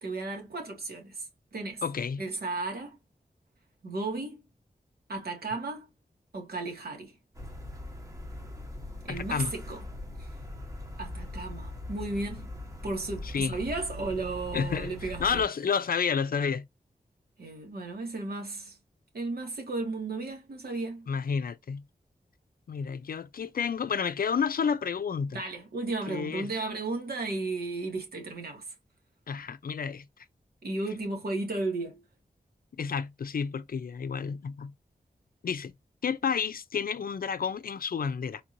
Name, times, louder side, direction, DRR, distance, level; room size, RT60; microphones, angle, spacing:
voice 1, 0.0-1.8 2.2-3.0 3.8-4.4 5.1-5.9 6.3-7.1 9.0-9.8 10.2-10.3 11.0-12.6 12.8-15.4 17.4-18.8 19.1-21.1 25.3-28.7 30.6-32.0, right 3 dB, 85° right, 1.9 m, -34 dB
voice 2, 1.8-2.2 9.1-9.5 13.2-13.6 14.5-14.9 15.2-16.7 21.1-21.8 22.7-25.4 26.1-26.5 29.3-30.0 32.8-34.7 35.4-35.7 36.0-38.4, left 6 dB, 70° left, 0.5 m, -30 dB
sound 1, 7.3-15.4, left 1 dB, 20° right, 1.2 m, -41 dB
4.2 x 3.0 x 2.6 m
wide cardioid pair, 115°, 16 cm